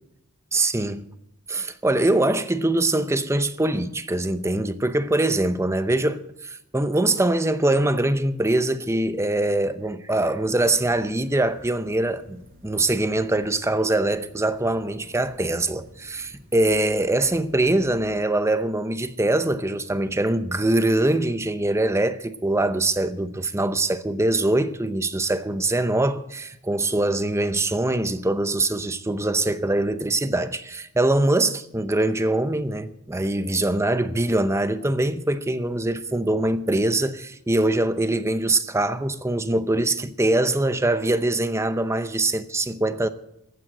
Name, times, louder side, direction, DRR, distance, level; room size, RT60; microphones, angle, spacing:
voice 1, 0.5-1.1 1.5-43.1, right 2 dB, 10° right, 0.6 m, -23 dB
sound 1, 10.6-18.2, equal, 40° right, 5.2 m, -52 dB
15.0 x 9.0 x 7.7 m
head